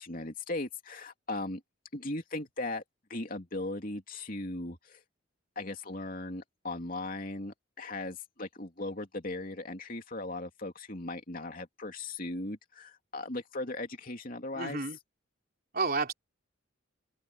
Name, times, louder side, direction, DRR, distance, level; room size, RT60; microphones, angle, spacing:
voice 1, 0.0-1.6 1.9-2.8 3.1-5.0 5.5-14.8, left 2 dB, 45° left, 3.0 m, -38 dB
voice 2, 14.5-15.0 15.7-16.1, right 4 dB, 45° right, 3.9 m, -30 dB
open air
head